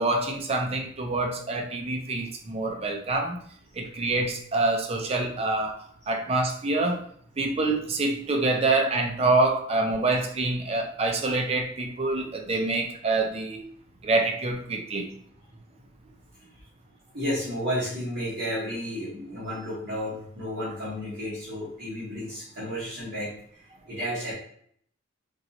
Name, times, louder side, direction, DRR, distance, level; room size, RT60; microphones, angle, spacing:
voice 1, 0.0-3.4 3.8-7.1 7.4-13.7 14.0-15.1, right 2 dB, 30° right, 0.5 m, -26 dB
voice 2, 17.1-24.3, equal, 55° right, 1.2 m, -32 dB
4.5 x 2.8 x 2.7 m
head